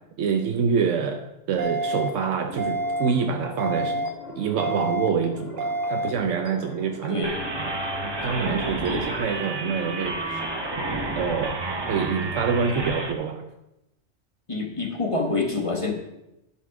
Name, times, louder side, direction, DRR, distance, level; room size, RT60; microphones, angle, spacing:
voice 1, 0.2-4.0 4.4-7.3 7.5-10.3 11.1-13.4, right 6 dB, 90° right, 4 dB, 1.1 m, -26 dB
sound 1, 1.5-11.2, left 2 dB, 80° left, 1.6 m, -41 dB
sound 2, 1.6-2.1 2.6-3.1 3.6-4.1 4.6-5.1 5.6-6.1, right 1 dB, 45° right, 1.0 m, -27 dB
sound 3, 7.2-13.1, right 2 dB, 25° right, 0.9 m, -30 dB
voice 2, 14.5-15.9, left 3 dB, 25° left, 2 dB, 1.3 m, -26 dB
11.0 x 5.8 x 4.7 m, 0.90 s
omnidirectional pair, 1.2 m